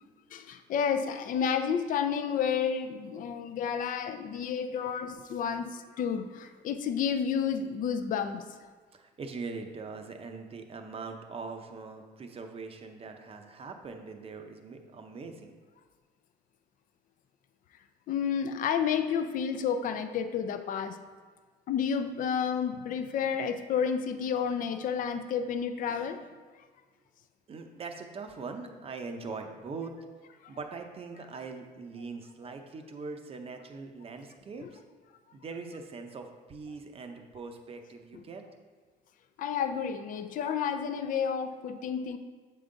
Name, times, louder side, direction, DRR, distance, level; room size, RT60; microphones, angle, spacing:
voice 1, 0.3-8.4 18.1-21.0 21.7-26.3 34.6-34.7 39.4-42.2, left 7 dB, 55° left, 9 dB, 0.4 m, -30 dB
voice 2, 8.9-15.5 27.5-29.9 30.5-34.8 35.3-38.4, right 4 dB, 35° right, 5 dB, 0.6 m, -42 dB
7.6 x 3.7 x 3.8 m, 1.5 s
cardioid pair, 110°, 17 cm